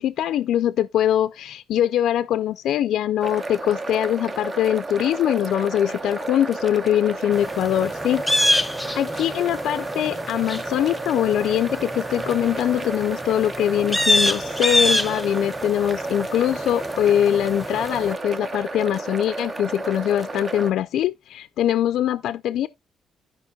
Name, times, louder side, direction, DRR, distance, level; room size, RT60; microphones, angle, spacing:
voice 1, 0.0-8.6 9.0-22.7, left 11 dB, 80° left, 0.4 m, -22 dB
sound 1, 3.2-20.7, right 2 dB, 35° right, 0.8 m, -32 dB
sound 2, 7.3-18.1, left 1 dB, 5° left, 0.6 m, -27 dB
15.0 x 5.1 x 2.3 m
cardioid pair, 90°, 0 cm